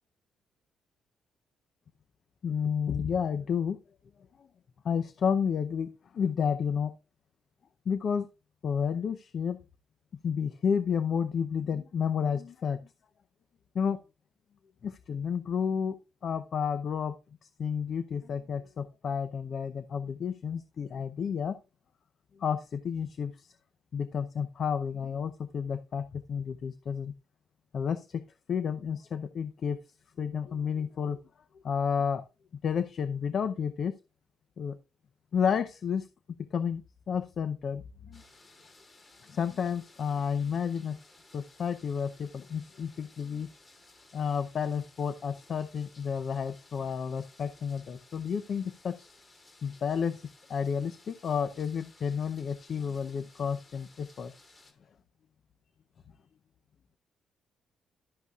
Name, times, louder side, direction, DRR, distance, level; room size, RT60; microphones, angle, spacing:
voice 1, 2.4-3.8 4.4-4.5 4.8-6.9 7.9-8.3 8.6-9.6 10.2-12.9 13.7-14.0 14.8-16.0 16.2-17.1 17.6-21.6 22.4-23.5 23.9-27.1 27.7-31.2 31.6-32.2 32.6-33.9 34.6-34.8 35.3-36.1 36.5-38.2 39.2-41.0 41.3-43.5 44.1-49.1 49.6-54.3, left 7 dB, 55° left, 12 dB, 0.6 m, -31 dB
sound 1, 38.1-54.7, left 2 dB, 35° left, 2.8 m, -58 dB
12.0 x 8.2 x 2.4 m, 0.30 s
cardioid pair, 90°, 0 cm